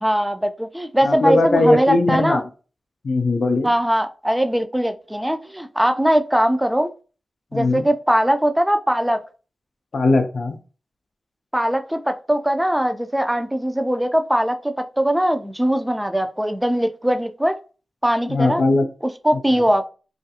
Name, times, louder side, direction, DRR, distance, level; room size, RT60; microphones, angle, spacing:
voice 1, 0.0-2.4 3.6-6.9 7.5-9.2 11.5-17.6 18.0-18.6 19.2-19.8, equal, 10° right, 8 dB, 0.4 m, -20 dB
voice 2, 1.0-2.4 3.0-3.7 7.5-7.8 9.9-10.6 18.3-18.9, left 2 dB, 70° left, 5 dB, 0.3 m, -19 dB
2.3 x 2.3 x 2.7 m, 0.36 s
cardioid pair, 45°, 0 cm